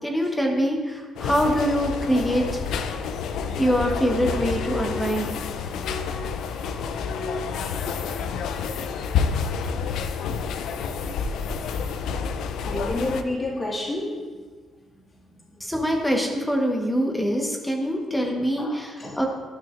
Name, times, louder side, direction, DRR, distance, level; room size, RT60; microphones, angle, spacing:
voice 1, 0.0-2.6 3.6-5.4 6.6-6.7 7.3-7.4 15.6-19.3, equal, 10° left, 1 dB, 1.1 m, -24 dB
sound 1, 1.2-13.2, left 6 dB, 80° left, 0.5 m, -29 dB
voice 2, 12.6-14.3 15.3-15.4 18.6-19.2, left 2 dB, 30° left, -4 dB, 2.0 m, -30 dB
12.0 x 5.8 x 2.5 m, 1.5 s
cardioid pair, 90°, 0 cm